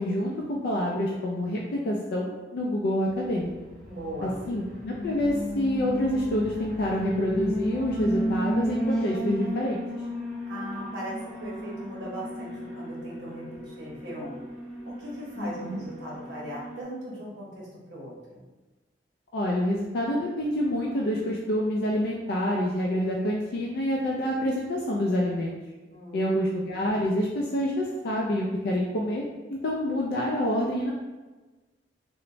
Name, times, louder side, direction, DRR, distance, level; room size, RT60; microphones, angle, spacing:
voice 1, 0.0-3.5 4.2-9.8 15.4-15.8 19.3-25.6 26.1-29.2 29.5-30.9, left 1 dB, 60° left, -2 dB, 0.3 m, -27 dB
Alarm, 3.4-16.8, equal, 5° left, 0.5 m, -34 dB
voice 2, 3.8-4.4 10.5-14.3 14.9-18.5 25.9-26.3, equal, 85° right, -5 dB, 0.7 m, -39 dB
3.0 x 2.1 x 2.6 m, 1.2 s
head